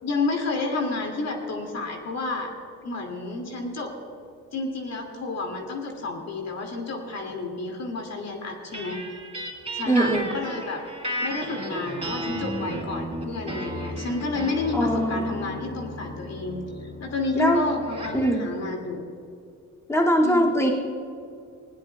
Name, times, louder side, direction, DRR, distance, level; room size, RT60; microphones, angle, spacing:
voice 1, 0.0-2.5 2.8-3.9 4.5-9.0 9.7-10.8 11.2-19.1 20.2-20.6, left 3 dB, 60° left, 1 dB, 2.4 m, -30 dB
sound 1, 8.7-18.3, equal, 20° right, 3.0 m, -34 dB
voice 2, 9.9-10.3 14.7-15.4 17.4-17.7 18.1-18.4 19.9-20.7, equal, 10° left, -2 dB, 2.2 m, -22 dB
19.5 x 16.5 x 2.3 m, 2.4 s
cardioid pair, 90°, 30 cm